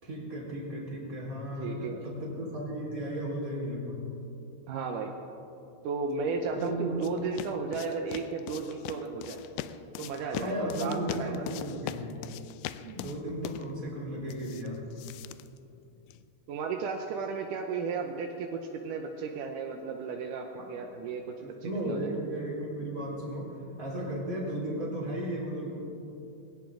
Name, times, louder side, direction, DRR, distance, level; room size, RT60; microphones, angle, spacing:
voice 1, 0.0-4.1 6.5-7.0 10.2-12.1 12.9-14.8 20.6-20.7 21.4-23.5 23.8-25.8, right 1 dB, 20° right, -5 dB, 4.2 m, -35 dB
voice 2, 1.6-2.0 4.7-5.1 5.8-9.4 10.0-11.6 12.8-13.0 16.5-21.2 21.6-22.1, right 5 dB, 80° right, 3 dB, 1.9 m, -34 dB
sound 1, 6.3-16.3, left 12 dB, 90° left, 2.0 m, -42 dB
21.0 x 17.5 x 3.8 m, 2.8 s
omnidirectional pair, 4.7 m